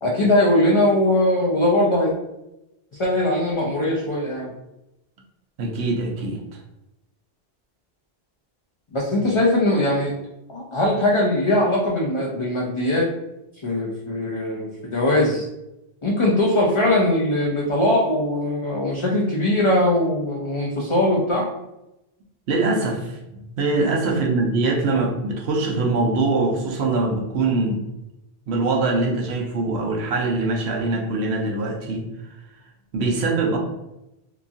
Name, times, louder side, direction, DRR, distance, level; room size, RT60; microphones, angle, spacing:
voice 1, 0.0-2.1 3.0-4.5 8.9-10.1 10.5-13.1 13.6-15.5 16.0-21.5, left 1 dB, 45° left, -3 dB, 0.4 m, -20 dB
voice 2, 5.6-6.4 22.5-27.8 28.5-32.0 32.9-33.6, right 3 dB, 90° right, 1 dB, 0.9 m, -23 dB
2.9 x 2.3 x 2.6 m, 0.91 s
omnidirectional pair, 1.1 m